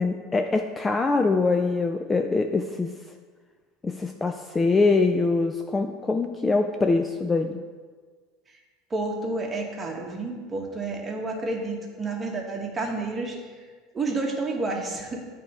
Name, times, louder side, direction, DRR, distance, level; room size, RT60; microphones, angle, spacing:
voice 1, 0.0-2.9 3.8-7.6, left 3 dB, 15° left, 5 dB, 0.3 m, -23 dB
voice 2, 8.9-13.4 13.9-15.2, right 3 dB, 20° right, 0 dB, 1.2 m, -30 dB
9.1 x 3.4 x 5.3 m, 1.5 s
supercardioid pair, 135°, 0 cm